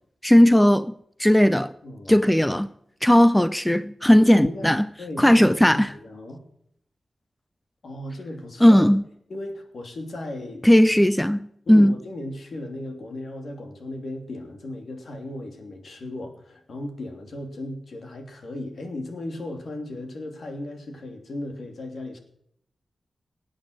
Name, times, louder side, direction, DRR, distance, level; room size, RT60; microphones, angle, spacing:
voice 1, 0.2-0.9 1.2-1.7 2.1-2.7 3.0-4.9 5.2-5.9 8.6-9.0 10.6-11.4 11.7-12.0, equal, 5° left, 0.5 m, -16 dB
voice 2, 1.8-2.2 4.2-4.7 5.0-6.4 7.8-8.8 9.3-10.6 11.6-22.2, left 1 dB, 60° left, 3.1 m, -36 dB
18.5 x 8.6 x 6.2 m
wide cardioid pair, 125°, 0 cm